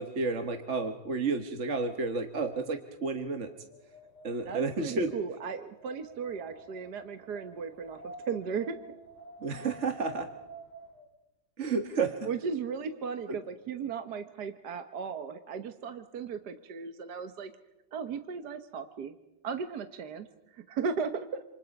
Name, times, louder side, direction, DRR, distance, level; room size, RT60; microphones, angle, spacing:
voice 1, 0.0-3.5 4.2-5.1 9.4-10.3 11.6-12.1, right 4 dB, 40° right, 6 dB, 1.6 m, -31 dB
Wind, 3.3-11.1, right 2 dB, 20° left, 4.7 m, -51 dB
voice 2, 4.4-8.8 12.2-17.5 17.9-19.2 19.4-21.4, right 6 dB, 60° right, 8 dB, 1.6 m, -36 dB
28.0 x 28.0 x 5.3 m, 0.98 s
omnidirectional pair, 2.1 m